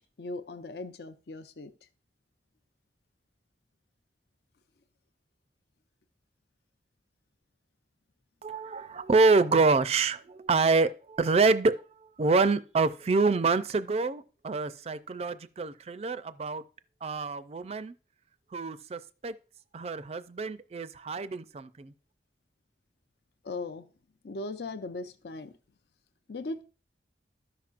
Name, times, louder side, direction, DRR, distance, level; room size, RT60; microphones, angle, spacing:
voice 1, 0.2-1.7 23.4-23.9 24.2-25.5 26.3-26.6, left 2 dB, 65° left, 0.5 m, -38 dB
voice 2, 8.4-11.8 12.2-16.6 17.0-17.9 18.5-19.3 19.7-21.9, right 4 dB, 35° right, 0.4 m, -26 dB
13.5 x 5.8 x 2.5 m
head